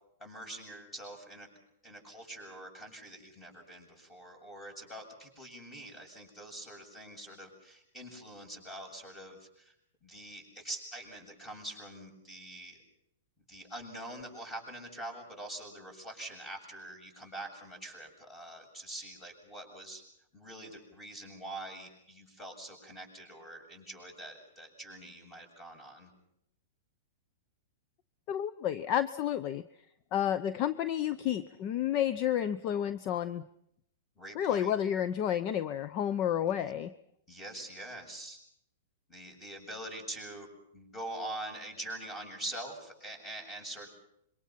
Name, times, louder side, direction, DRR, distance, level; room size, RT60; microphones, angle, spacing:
voice 1, 0.2-1.5 1.8-9.7 10.0-12.8 13.5-20.0 20.3-26.1 34.2-34.7 36.5-36.7 37.3-38.4 39.1-40.5 40.7-43.9, right 1 dB, 15° left, 5 dB, 7.5 m, -44 dB
voice 2, 28.3-29.6 30.1-33.4 34.3-36.9, left 10 dB, 40° left, 14 dB, 0.8 m, -30 dB
26.5 x 23.5 x 5.9 m, 0.75 s
hypercardioid pair, 125°, 0 cm